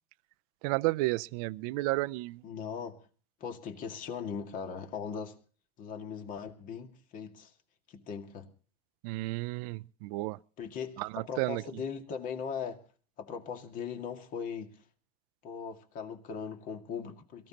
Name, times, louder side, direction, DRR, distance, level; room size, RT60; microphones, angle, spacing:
voice 1, 0.6-2.4 9.0-10.4 11.0-11.6, right 21 dB, 65° right, 0.6 m, -32 dB
voice 2, 2.4-3.0 3.4-5.4 5.8-7.5 7.9-8.5 10.6-12.8 13.2-14.8 15.4-17.5, left 6 dB, 40° left, 2.2 m, -39 dB
22.5 x 15.0 x 3.0 m
supercardioid pair, 130°, 21 cm